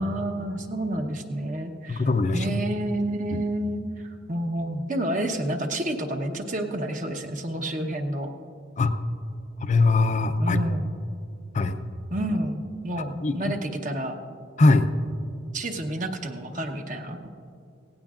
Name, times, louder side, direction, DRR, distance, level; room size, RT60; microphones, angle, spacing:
voice 1, 0.0-2.0 2.3-3.8 4.3-8.3 10.4-11.0 12.1-14.2 15.5-17.3, right 1 dB, 40° right, 4 dB, 1.0 m, -29 dB
voice 2, 1.9-2.6 3.3-3.4 8.8-8.9 9.6-10.6 11.5-11.8 13.0-13.4 14.6-14.9, left 3 dB, 40° left, 7 dB, 0.5 m, -21 dB
18.0 x 16.5 x 2.5 m, 2.5 s
head